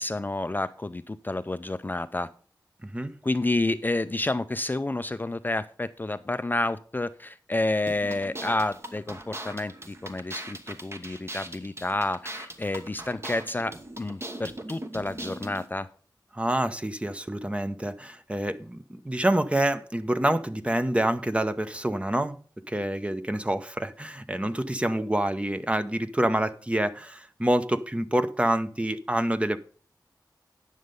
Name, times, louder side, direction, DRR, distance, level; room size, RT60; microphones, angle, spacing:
voice 1, 0.0-2.3 3.2-15.9, left 2 dB, 25° left, 0.4 m, -29 dB
voice 2, 2.8-3.1 16.3-29.6, right 1 dB, 15° right, 0.7 m, -27 dB
sound 1, 7.9-15.7, right 1 dB, 35° right, 1.2 m, -40 dB
9.7 x 6.5 x 5.3 m
wide cardioid pair, 65°, 8 cm